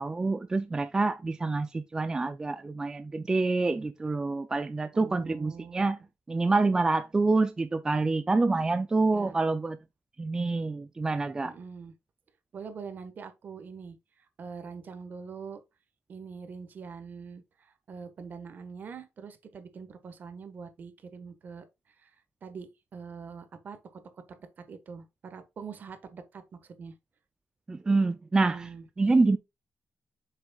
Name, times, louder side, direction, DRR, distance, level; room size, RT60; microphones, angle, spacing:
voice 1, 0.0-6.0 6.3-9.8 10.2-11.5 27.7-28.7 29.0-29.4, right 3 dB, 15° right, 0.4 m, -27 dB
voice 2, 4.9-5.8 9.1-9.3 11.4-11.9 12.5-15.6 16.1-21.7 22.0-22.1 22.4-24.2 24.7-26.9 28.3-29.1, right 5 dB, 45° right, 1.3 m, -44 dB
8.1 x 6.5 x 2.3 m
wide cardioid pair, 175°, 4 cm